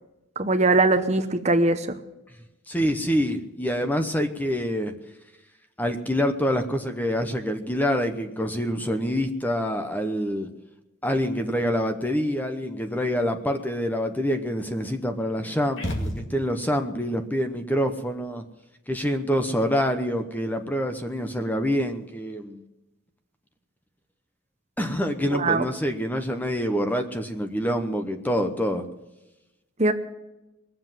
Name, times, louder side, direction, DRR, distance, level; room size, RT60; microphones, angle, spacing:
voice 1, 0.4-2.0 25.3-25.7 29.8-29.9, right 2 dB, 35° right, 7 dB, 0.9 m, -21 dB
voice 2, 2.7-4.9 5.8-10.5 11.0-18.4 18.9-22.6 24.8-28.8, equal, 10° left, 7 dB, 0.8 m, -26 dB
sound 1, 15.8-16.8, equal, 60° left, 2.5 m, -31 dB
20.0 x 7.8 x 7.4 m, 0.99 s
head